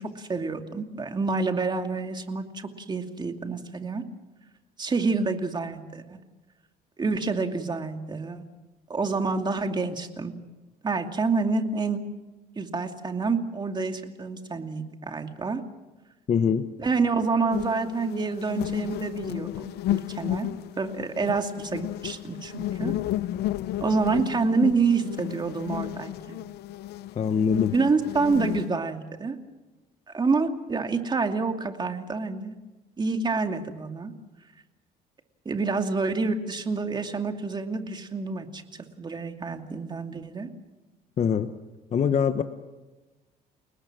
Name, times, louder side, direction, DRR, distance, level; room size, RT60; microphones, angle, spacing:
voice 1, 0.0-4.0 4.8-6.2 7.0-8.4 8.9-10.3 10.8-12.0 12.6-15.6 16.8-20.5 20.8-22.9 23.8-26.4 27.7-29.4 30.1-32.5 33.0-34.1 35.4-40.5, right 4 dB, 25° right, 5 dB, 2.5 m, -28 dB
voice 2, 16.3-16.7 27.1-27.7 41.2-41.5 41.9-42.4, left 7 dB, 40° left, 9 dB, 1.2 m, -23 dB
sound 1, 17.5-28.7, left 14 dB, 75° left, 0.8 m, -33 dB
30.0 x 19.0 x 6.2 m, 1.1 s
cardioid pair, 110°, 17 cm